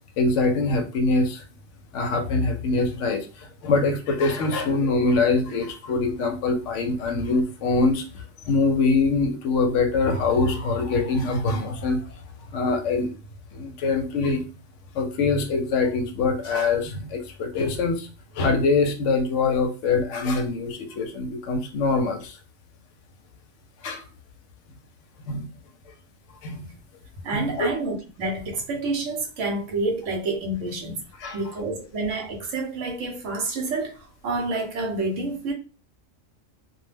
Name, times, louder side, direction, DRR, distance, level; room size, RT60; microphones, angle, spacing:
voice 1, 0.2-1.4 1.9-12.2 12.5-13.1 13.5-14.4 14.9-18.1 18.3-22.4 23.8-24.1 25.3-25.5 26.4-26.6 27.3-27.7 31.2-31.4, left 3 dB, 70° left, 0.8 m, -24 dB
voice 2, 27.2-31.0 31.3-35.5, right 2 dB, 70° right, 1.0 m, -28 dB
2.4 x 2.1 x 3.2 m
omnidirectional pair, 1.4 m